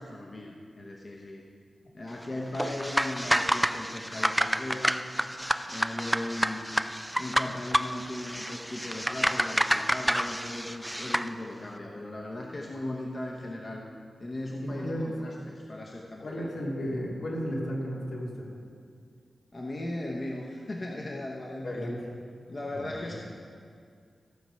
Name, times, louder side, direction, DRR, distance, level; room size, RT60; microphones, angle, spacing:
voice 1, 0.0-1.4 1.9-5.1 5.7-6.7 7.2-13.9 14.2-16.6 19.5-21.9 22.5-23.2, left 1 dB, 35° left, -1 dB, 1.0 m, -37 dB
sound 1, 2.5-11.3, equal, ahead, 0.3 m, -29 dB
voice 2, 14.6-15.1 16.2-18.5 21.6-22.2 22.7-23.2, equal, 75° left, -4 dB, 2.7 m, -34 dB
15.0 x 7.5 x 5.7 m, 2.2 s
wide cardioid pair, 150°, 0 cm